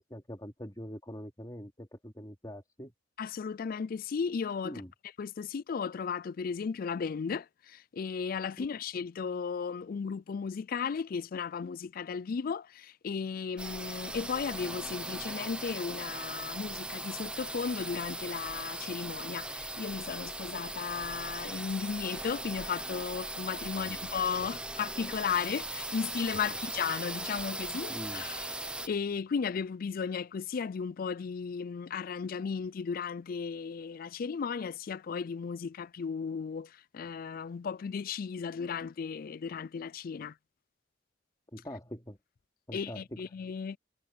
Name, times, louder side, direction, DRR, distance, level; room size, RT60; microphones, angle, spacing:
voice 1, 0.0-2.9 4.6-4.9 8.6-8.7 23.7-24.0 24.4-24.5 27.9-28.2 41.5-42.2 42.7-43.2, equal, 20° left, 3.1 m, -43 dB
voice 2, 3.2-4.8 5.2-40.3 42.7-43.8, left 6 dB, 50° left, 0.4 m, -35 dB
sound 1, 13.6-28.9, right 2 dB, 5° right, 0.7 m, -39 dB
head